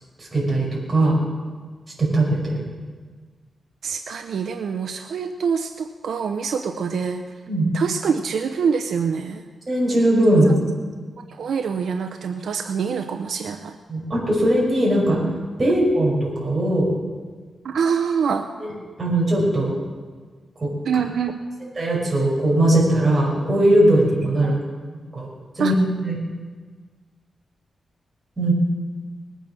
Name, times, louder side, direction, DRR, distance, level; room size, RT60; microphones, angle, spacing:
voice 1, 0.2-1.2 2.0-2.5 7.5-7.7 9.7-10.5 13.9-15.2 15.6-16.9 19.0-19.7 20.6-20.7 21.8-24.6 24.9-25.3 25.6-25.7 26.0-26.2 28.4-28.5, right 1 dB, 30° right, -4 dB, 5.9 m, -19 dB
voice 2, 3.8-7.3 7.7-9.4 10.5-10.6 11.3-13.8 17.6-18.5 20.8-21.3 24.4-24.6 25.6-25.7, right 6 dB, 80° right, 6 dB, 0.7 m, -25 dB
20.0 x 9.2 x 6.3 m, 1.5 s
wide cardioid pair, 135°, 0 cm